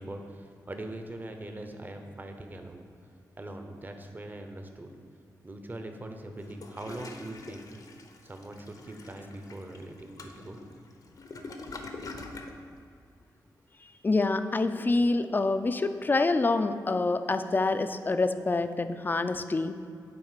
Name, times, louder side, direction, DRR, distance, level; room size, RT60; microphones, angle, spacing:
voice 1, 0.0-2.8 3.4-4.9 5.4-7.6 8.2-10.6, right 1 dB, 25° right, 5 dB, 0.8 m, -41 dB
Toilet flush, 6.4-12.6, left 3 dB, 60° left, 0.8 m, -44 dB
voice 2, 14.0-19.8, left 3 dB, 30° left, 10 dB, 0.4 m, -26 dB
8.6 x 4.2 x 5.8 m, 2.4 s
cardioid pair, 80°, 7 cm